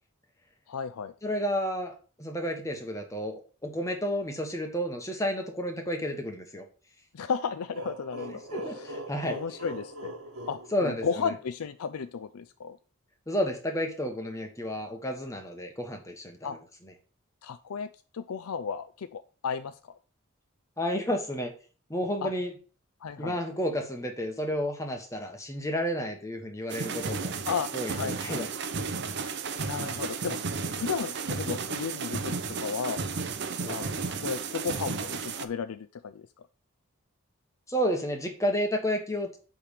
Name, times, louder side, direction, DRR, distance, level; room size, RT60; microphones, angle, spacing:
voice 1, 0.7-1.1 7.1-8.4 8.7-9.0 9.3-10.2 10.5-12.8 16.4-16.6 17.4-17.9 18.1-20.0 22.2-22.3 23.0-23.4 27.5-27.7 28.0-28.5 29.6-30.4 30.7-33.0 33.7-36.3, left 6 dB, 85° left, 10 dB, 0.5 m, -34 dB
voice 2, 1.2-3.3 3.6-6.6 8.5-9.4 10.7-11.3 13.3-16.5 20.8-21.5 21.9-22.5 23.2-27.3 27.7-28.5 33.6-33.8 37.7-39.4, equal, 15° left, 4 dB, 1.3 m, -31 dB
sound 1, 7.7-11.5, right 1 dB, 85° right, 1.6 m, -41 dB
sound 2, 26.7-35.5, right 4 dB, 50° right, 0.7 m, -33 dB
8.6 x 3.6 x 6.5 m, 0.37 s
head